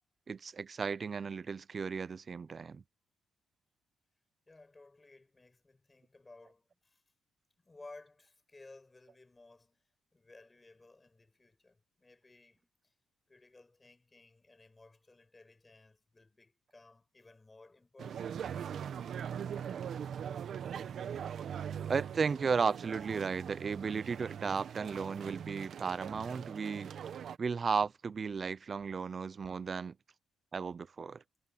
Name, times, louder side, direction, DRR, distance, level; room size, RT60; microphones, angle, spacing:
voice 1, 0.3-2.8 21.9-26.9 27.4-30.0 30.5-31.2, right 5 dB, 40° right, 0.6 m, -34 dB
voice 2, 4.5-7.0 7.6-12.9 13.3-18.5, left 3 dB, 20° left, 7.7 m, -58 dB
sound 1, 18.0-27.4, right 8 dB, 60° right, 1.4 m, -41 dB
cardioid pair, 90°, 0 cm